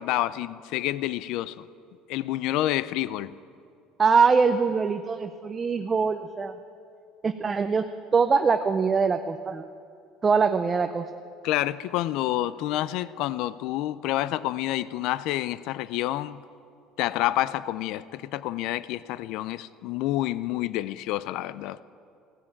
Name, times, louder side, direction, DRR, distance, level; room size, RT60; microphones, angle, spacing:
voice 1, 0.0-1.6 2.1-3.3 11.4-16.4 17.0-21.8, left 15 dB, 70° left, 0.4 m, -28 dB
voice 2, 4.0-6.5 7.2-7.8 8.1-9.6 10.2-11.1, right 5 dB, 25° right, 0.5 m, -23 dB
16.0 x 10.5 x 8.7 m
cardioid pair, 125°, 0 cm